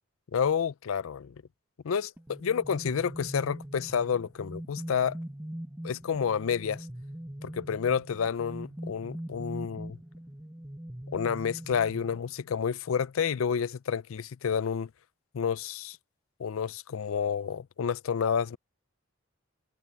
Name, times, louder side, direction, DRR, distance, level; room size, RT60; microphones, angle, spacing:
voice 1, 0.3-1.4 1.8-5.2 5.8-6.9 7.4-10.0 11.1-14.9 15.3-16.0 16.4-18.6, left 7 dB, 90° left, 0.5 m, -29 dB
sound 1, 2.2-12.6, right 1 dB, 10° right, 1.3 m, -42 dB
head